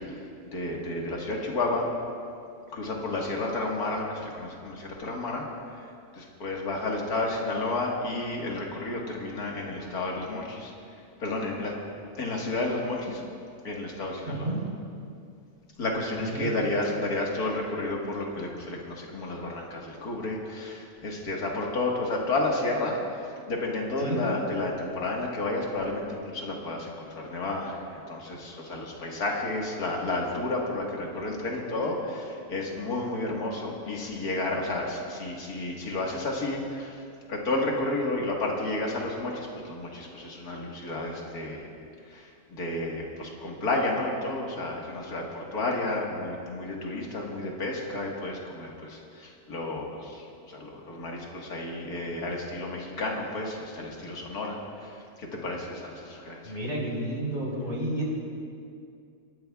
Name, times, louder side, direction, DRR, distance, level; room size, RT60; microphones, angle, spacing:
voice 1, 0.0-1.9 2.7-5.5 5.7-10.7 11.2-11.8 12.2-13.2 13.6-14.5 15.8-37.0 37.3-41.7 42.0-56.6, left 2 dB, 85° left, -2 dB, 2.2 m, -31 dB
voice 2, 14.3-14.6 16.2-16.5 24.0-24.2 56.4-58.1, right 1 dB, 35° right, -5 dB, 4.1 m, -31 dB
27.5 x 12.0 x 2.4 m, 2.4 s
omnidirectional pair, 1.6 m